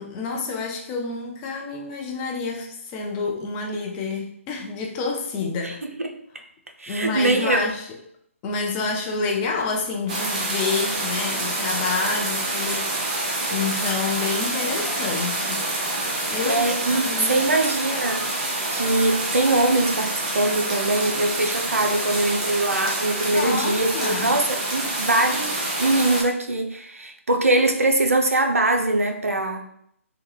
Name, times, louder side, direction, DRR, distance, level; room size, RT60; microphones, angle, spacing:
voice 1, 0.0-5.8 6.9-7.9 8.4-15.7 16.3-17.5 23.3-24.4, left 4 dB, 15° left, 0 dB, 0.3 m, -28 dB
voice 2, 6.8-7.7 16.4-29.7, right 2 dB, 75° right, 4 dB, 0.5 m, -22 dB
sound 1, 10.1-26.2, right 2 dB, 30° right, 0.6 m, -27 dB
2.8 x 2.2 x 3.1 m, 0.71 s
figure-of-eight pair, 140°, 8 cm